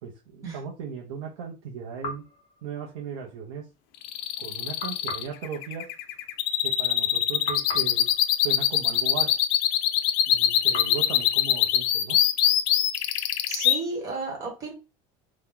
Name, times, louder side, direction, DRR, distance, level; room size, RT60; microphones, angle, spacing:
voice 1, 0.0-2.2 2.6-3.7 4.4-5.9 6.6-8.1 8.4-9.3 10.3-12.2, right 7 dB, 75° right, 0 dB, 0.7 m, -37 dB
sound 1, 2.0-3.4 4.8-7.1 7.5-9.7 10.7-12.6, left 2 dB, 35° left, 0.7 m, -41 dB
sound 2, 4.0-13.8, left 11 dB, 65° left, 0.4 m, -23 dB
voice 2, 13.5-14.7, right 3 dB, 25° right, 0 dB, 1.1 m, -33 dB
2.9 x 2.2 x 3.6 m, 0.29 s
cardioid pair, 180°, 14 cm